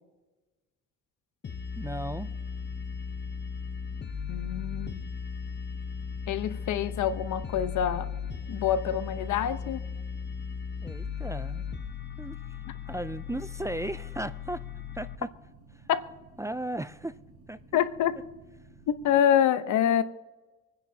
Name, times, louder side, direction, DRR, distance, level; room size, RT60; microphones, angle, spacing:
sound 1, 1.4-15.2, left 6 dB, 35° left, 0.9 m, -37 dB
sound 2, 1.7-19.2, right 3 dB, 75° right, 4.3 m, -54 dB
voice 1, 1.8-2.3 10.8-11.7 12.2-12.4 12.9-14.6 14.9-15.3 16.4-17.2 17.5-17.6, right 1 dB, 10° right, 0.5 m, -35 dB
voice 2, 4.3-5.1 6.3-8.1 8.5-9.8 15.9-16.1 17.7-18.2 18.9-20.0, left 9 dB, 75° left, 1.0 m, -26 dB
26.5 x 9.9 x 2.8 m
cardioid pair, 90°, 30 cm